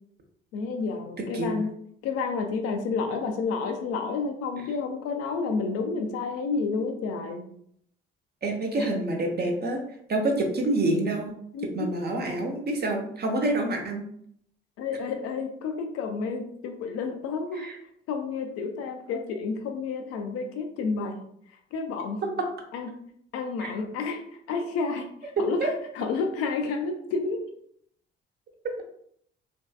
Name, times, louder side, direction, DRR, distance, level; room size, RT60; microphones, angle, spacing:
voice 1, 0.5-1.7 2.0-7.4 8.8-8.9 11.5-11.9 14.8-17.7 18.1-21.2 21.7-22.2 22.7-22.9 23.3-25.1 25.4-25.7 26.0-27.4, left 4 dB, 55° left, 5 dB, 0.5 m, -30 dB
voice 2, 8.4-9.8 10.1-11.3 11.7-14.0 17.5-17.8 22.4-22.5 23.6-23.7 25.6-25.7, right 2 dB, 35° right, 2 dB, 0.7 m, -27 dB
3.0 x 2.6 x 2.3 m, 0.69 s
figure-of-eight pair, 50°, 29 cm